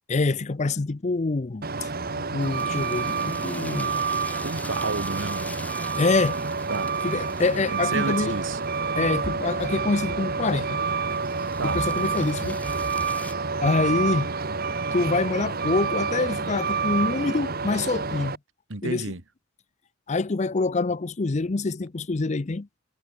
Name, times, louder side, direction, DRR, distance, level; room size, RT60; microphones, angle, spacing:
voice 1, 0.1-1.7 2.3-4.0 6.0-6.4 7.0-8.3 9.0-10.8 11.4-12.6 13.6-14.3 14.9-18.4 18.8-19.0 20.1-22.7, left 3 dB, 35° left, 0.6 m, -25 dB
Truck, 1.6-18.4, right 4 dB, 50° right, 1.7 m, -28 dB
sound 1, 2.4-13.3, left 2 dB, 10° left, 3.9 m, -45 dB
voice 2, 4.3-5.7 6.7-6.9 7.7-8.6 11.6-11.8 18.7-19.2, right 3 dB, 70° right, 2.0 m, -31 dB
head